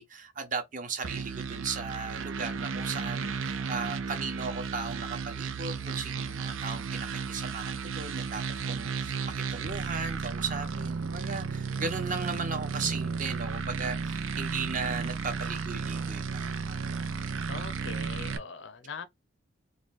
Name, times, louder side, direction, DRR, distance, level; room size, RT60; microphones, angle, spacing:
voice 1, 0.0-8.4 8.7-16.9, right 5 dB, 40° right, 0.8 m, -37 dB
sound 1, 1.0-18.4, right 5 dB, 85° right, 0.6 m, -34 dB
voice 2, 17.5-19.0, left 4 dB, 65° left, 0.6 m, -41 dB
3.2 x 2.3 x 4.1 m
head